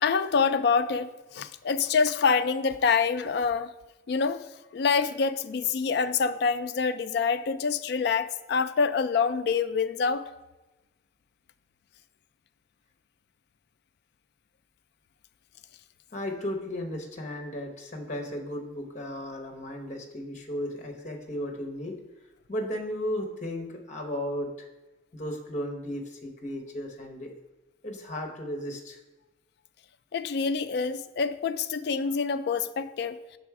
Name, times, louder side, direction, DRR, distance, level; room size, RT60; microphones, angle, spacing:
voice 1, 0.0-3.7 4.1-4.4 4.7-10.2 30.1-33.2, left 5 dB, 60° left, 10 dB, 0.3 m, -26 dB
voice 2, 16.1-22.0 22.5-24.7 25.1-27.3 27.8-29.0, left 1 dB, 40° left, 2 dB, 0.9 m, -35 dB
6.0 x 4.1 x 4.7 m, 1.1 s
head